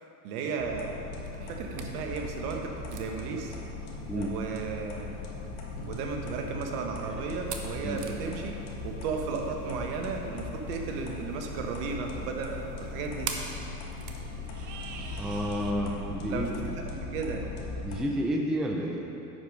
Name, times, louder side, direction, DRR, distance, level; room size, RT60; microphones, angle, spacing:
voice 1, 0.2-1.0 1.4-3.6 4.1-5.1 5.9-13.3 16.3-17.5, right 5 dB, 65° right, 2 dB, 1.3 m, -35 dB
sound 1, 0.6-18.0, left 3 dB, 60° left, 1.6 m, -39 dB
sound 2, 1.2-15.7, right 6 dB, 40° right, 0.9 m, -45 dB
voice 2, 15.2-16.7 17.8-19.1, equal, ahead, 0 dB, 0.4 m, -30 dB
9.8 x 4.9 x 5.3 m, 2.9 s
hypercardioid pair, 100°, 49 cm